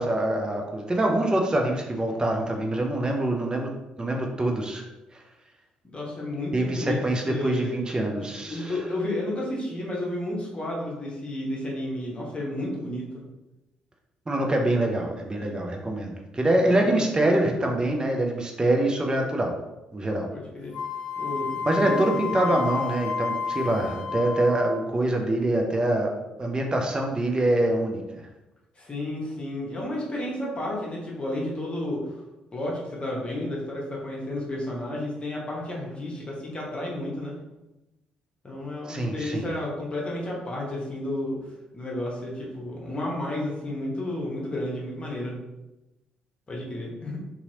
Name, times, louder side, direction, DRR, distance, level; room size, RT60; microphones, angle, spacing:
voice 1, 0.0-3.7 4.0-4.8 5.1-5.2 6.5-8.8 14.3-19.6 19.9-20.3 21.6-26.1 26.4-28.0 38.9-39.5, right 1 dB, 20° right, 1 dB, 0.6 m, -25 dB
voice 2, 5.8-7.8 8.2-13.0 16.4-17.0 20.3-20.8 21.2-22.1 22.5-22.6 28.8-32.1 32.5-37.4 38.4-41.4 41.7-45.3 46.5-47.2, left 1 dB, 30° left, -3 dB, 1.0 m, -32 dB
Wind instrument woodwind instrument, 20.7-24.9, left 5 dB, 65° left, 0.7 m, -31 dB
2.8 x 2.7 x 2.7 m, 1.0 s
hypercardioid pair, 45°, 4 cm